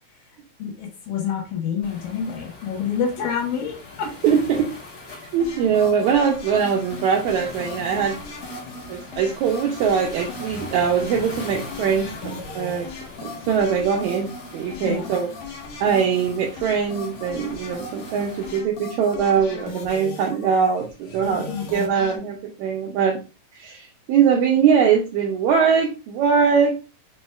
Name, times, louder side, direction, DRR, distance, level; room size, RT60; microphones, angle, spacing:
voice 1, 0.6-4.1 14.8-15.1 21.2-21.6, left 7 dB, 85° left, 1 dB, 2.9 m, -28 dB
Waves surf, 1.8-18.6, left 3 dB, 45° left, 2.7 m, -41 dB
voice 2, 4.2-4.7 5.3-8.2 8.9-12.9 13.2-15.3 15.8-23.2 23.6-26.8, right 7 dB, 75° right, -1 dB, 1.8 m, -22 dB
sound 1, 5.4-22.2, left 3 dB, 65° left, 1.9 m, -38 dB
6.1 x 3.1 x 2.3 m, 0.31 s
omnidirectional pair, 3.9 m